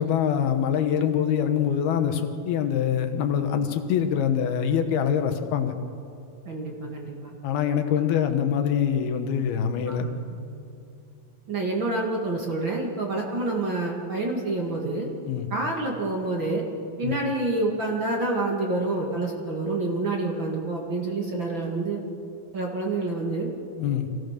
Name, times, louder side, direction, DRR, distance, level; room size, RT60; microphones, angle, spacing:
voice 1, 0.0-5.7 7.4-10.1 15.3-15.5 17.0-17.2 23.8-24.1, left 8 dB, 90° left, 7 dB, 3.2 m, -24 dB
voice 2, 6.4-7.3 9.8-10.4 11.5-15.1 15.5-16.6 17.0-22.0 22.5-23.5, right 2 dB, 40° right, -1 dB, 2.3 m, -28 dB
25.0 x 16.0 x 6.7 m, 2.5 s
omnidirectional pair, 4.3 m